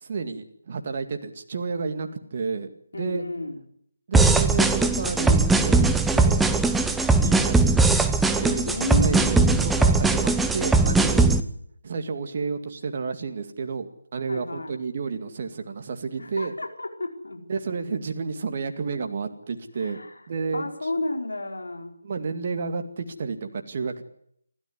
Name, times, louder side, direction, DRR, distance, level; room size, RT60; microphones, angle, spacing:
voice 1, 0.0-3.2 4.1-6.5 7.2-8.1 8.4-11.3 11.8-16.5 17.5-20.0 20.3-20.7 22.0-24.0, right 4 dB, 35° right, 6 dB, 2.2 m, -31 dB
voice 2, 2.9-3.6 8.6-9.8 14.3-14.7 16.2-17.4 19.8-20.2 20.5-21.9, left 2 dB, 70° left, 4 dB, 4.7 m, -32 dB
sound 1, 4.1-11.4, right 3 dB, 5° right, 0.8 m, -20 dB
27.0 x 13.5 x 9.7 m, 0.69 s
figure-of-eight pair, 155°, 0 cm